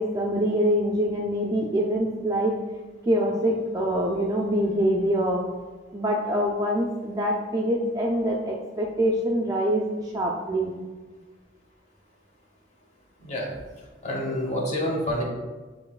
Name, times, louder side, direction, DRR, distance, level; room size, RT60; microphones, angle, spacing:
voice 1, 0.0-2.5 3.1-5.4 5.9-10.7, equal, 20° right, -1 dB, 0.3 m, -25 dB
voice 2, 14.0-15.2, left 1 dB, 35° left, -2 dB, 1.0 m, -27 dB
6.6 x 2.9 x 2.4 m, 1.3 s
head